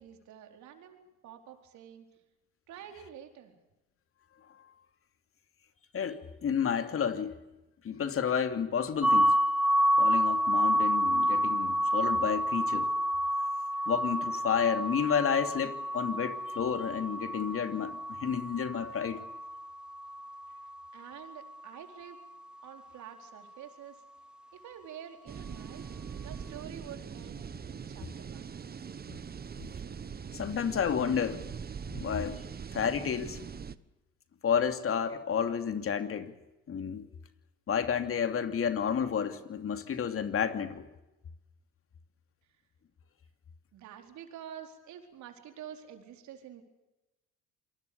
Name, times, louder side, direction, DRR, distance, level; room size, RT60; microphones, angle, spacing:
voice 1, 0.0-2.0 2.7-3.6 20.9-22.2 22.6-24.0 24.5-25.9 26.2-28.6 43.7-46.6, right 9 dB, 70° right, 4.4 m, -48 dB
voice 2, 5.9-7.4 7.8-9.3 10.0-12.9 13.9-19.2 30.3-31.4 31.9-32.4 32.7-33.4 34.4-36.3 36.7-37.1 37.7-40.9, left 7 dB, 50° left, 2.9 m, -31 dB
sound 1, 9.0-20.8, equal, 5° right, 0.8 m, -29 dB
sound 2, 25.3-33.7, right 6 dB, 30° right, 1.2 m, -42 dB
27.0 x 20.0 x 7.1 m
supercardioid pair, 80°, 30 cm